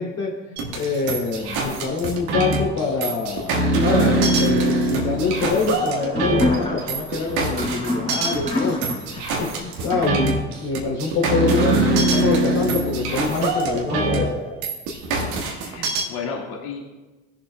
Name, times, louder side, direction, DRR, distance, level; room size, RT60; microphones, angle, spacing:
voice 1, 0.0-8.8 9.1-14.3, left 4 dB, 50° left, -2 dB, 2.7 m, -25 dB
sound 1, 0.6-16.0, right 2 dB, 85° right, 1.5 m, -23 dB
sound 2, 4.6-10.1, left 2 dB, 15° left, 2.9 m, -29 dB
voice 2, 15.2-16.8, left 5 dB, 80° left, -2 dB, 1.9 m, -33 dB
18.5 x 7.2 x 2.2 m, 1.2 s
supercardioid pair, 75°, 33 cm